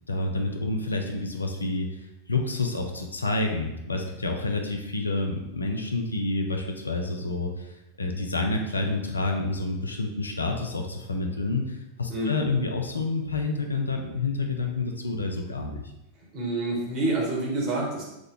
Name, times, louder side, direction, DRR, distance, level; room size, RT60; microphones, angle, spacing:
voice 1, 0.1-15.8, left 2 dB, 80° left, 3 dB, 0.4 m, -29 dB
voice 2, 16.3-18.0, right 2 dB, 40° right, -3 dB, 1.2 m, -27 dB
3.6 x 2.2 x 3.6 m, 0.90 s
figure-of-eight pair, 90°, 0 cm